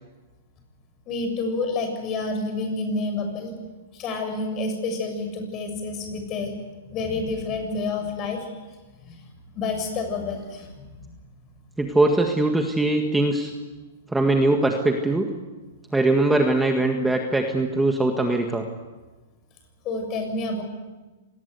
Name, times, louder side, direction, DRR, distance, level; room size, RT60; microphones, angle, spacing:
voice 1, 1.1-3.5 3.9-6.5 6.9-8.5 9.1-9.2 9.5-10.9 19.8-20.6, left 3 dB, 30° left, 5 dB, 6.9 m, -28 dB
voice 2, 11.8-13.5 14.1-15.3 15.9-18.7, right 2 dB, 5° right, 3 dB, 1.8 m, -21 dB
26.0 x 20.0 x 8.2 m, 1.2 s
hypercardioid pair, 150°, 0 cm